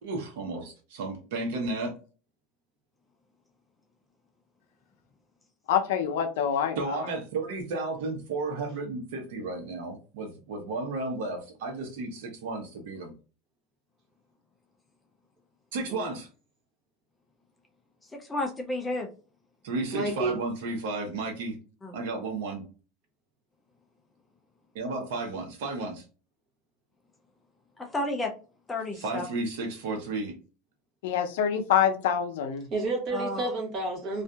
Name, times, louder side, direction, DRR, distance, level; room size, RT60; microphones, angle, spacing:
voice 1, 0.0-1.9 6.8-13.1 15.7-16.2 19.6-21.6 21.9-22.6 24.7-26.0 28.9-30.4, right 3 dB, 75° right, 0.9 m, -33 dB
voice 2, 5.7-6.8 31.0-32.7, left 8 dB, 80° left, 0.5 m, -25 dB
voice 3, 18.1-19.1 21.8-21.9 27.8-28.3 28.7-29.3 33.1-33.5, left 2 dB, 10° left, 0.4 m, -31 dB
voice 4, 19.9-20.3 32.7-34.2, right 2 dB, 35° right, 1.0 m, -30 dB
2.7 x 2.4 x 2.3 m
supercardioid pair, 170°, 0 cm